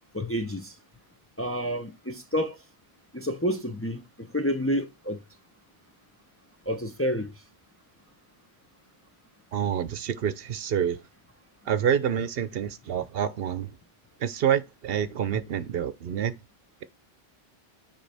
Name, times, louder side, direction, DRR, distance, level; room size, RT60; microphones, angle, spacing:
voice 1, 0.1-0.8 1.4-2.6 3.1-5.2 6.7-7.3, equal, 15° left, 0.6 m, -29 dB
voice 2, 9.5-11.0 11.7-13.7 14.2-16.3, right 9 dB, 70° right, 0.8 m, -27 dB
7.8 x 4.6 x 3.3 m
omnidirectional pair, 1.0 m